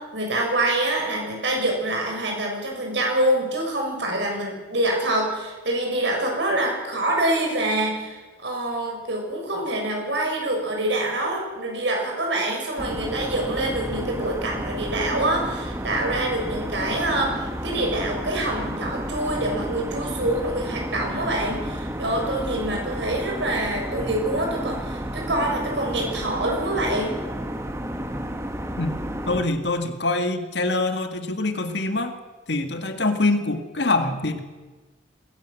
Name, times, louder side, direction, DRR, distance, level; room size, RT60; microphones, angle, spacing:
voice 1, 0.0-27.1, right 1 dB, 70° right, 1 dB, 7.0 m, -26 dB
sound 1, 12.8-29.4, equal, 15° right, 1.6 m, -31 dB
voice 2, 29.3-32.2 32.5-34.4, left 2 dB, 65° left, 7 dB, 1.9 m, -24 dB
20.5 x 17.5 x 7.7 m, 1.3 s
head